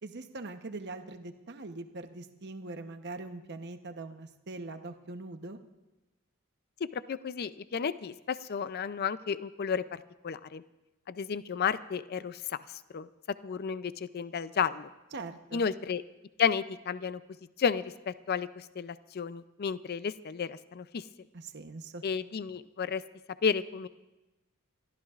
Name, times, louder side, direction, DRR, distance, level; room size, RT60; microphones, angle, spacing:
voice 1, 0.0-5.6 15.1-15.6 21.3-22.0, right 3 dB, 50° right, 7 dB, 0.9 m, -42 dB
voice 2, 6.8-10.6 11.1-12.4 12.9-13.1 13.4-14.9 15.5-16.0 16.4-17.2 17.6-21.0 22.0-23.0 23.4-23.9, left 6 dB, 45° left, 15 dB, 0.4 m, -32 dB
28.5 x 14.5 x 2.4 m, 1.1 s
head